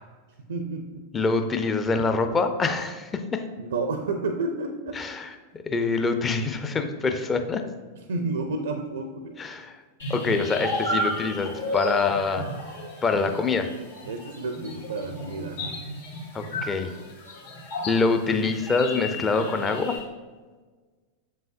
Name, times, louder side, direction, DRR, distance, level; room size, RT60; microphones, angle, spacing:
voice 1, 0.5-1.1 3.6-5.0 8.0-9.3 14.0-15.8, right 3 dB, 65° right, 7 dB, 0.4 m, -31 dB
voice 2, 1.1-3.4 5.0-5.3 5.7-7.6 9.4-9.8 10.1-12.4 13.0-13.7 16.3-16.9 17.9-20.0, left 4 dB, 20° left, 7 dB, 0.5 m, -25 dB
sound 1, 10.0-20.0, left 1 dB, 70° left, 1.9 m, -33 dB
7.3 x 5.5 x 2.6 m, 1.4 s
figure-of-eight pair, 90°, 0 cm